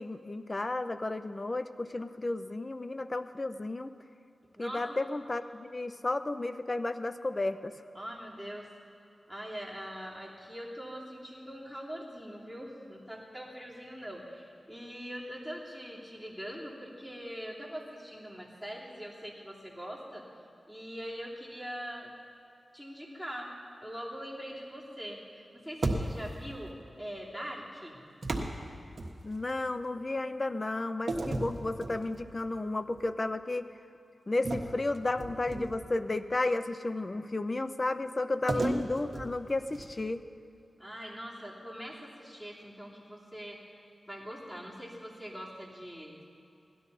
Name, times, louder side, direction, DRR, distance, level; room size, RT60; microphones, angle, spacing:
voice 1, 0.0-3.9 4.6-7.7 29.2-33.7 34.3-40.2, left 2 dB, 40° left, 11 dB, 0.6 m, -33 dB
voice 2, 4.6-5.0 7.9-8.7 9.3-20.2 20.7-22.1 22.7-23.5 23.8-28.0 38.5-38.8 40.8-43.8 44.1-46.4, equal, 5° left, -4 dB, 3.0 m, -42 dB
sound 1, 25.8-26.5 28.2-29.6 31.1-32.4 32.9-33.1 34.4-36.0 38.5-40.1, right 2 dB, 65° right, 1.3 m, -35 dB
17.5 x 12.0 x 4.1 m, 2.7 s
cardioid pair, 50°, 0 cm